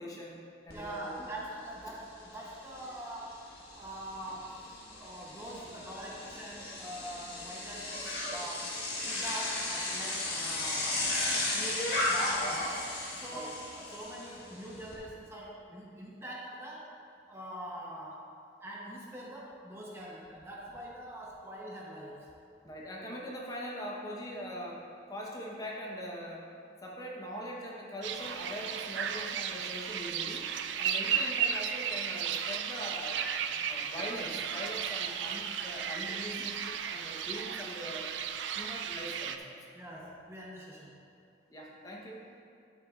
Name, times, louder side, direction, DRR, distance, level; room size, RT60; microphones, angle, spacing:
voice 1, 0.0-1.3 1.9-2.0 13.3-13.5 22.6-26.5 26.8-30.5 30.8-33.3 33.6-38.1 38.5-39.6 41.5-42.3, equal, 20° left, -3 dB, 0.9 m, -42 dB
Bicycle, 0.7-0.8 1.2-14.9, left 2 dB, 60° left, 1.6 m, -35 dB
voice 2, 0.7-3.4 3.7-4.6 4.9-11.0 11.5-12.9 13.2-16.9 17.3-18.2 18.6-22.3 39.7-40.9, right 1 dB, 15° right, -4 dB, 0.8 m, -43 dB
sound 1, 28.0-39.4, right 8 dB, 85° right, 0.4 m, -34 dB
9.9 x 8.2 x 2.4 m, 2.5 s
head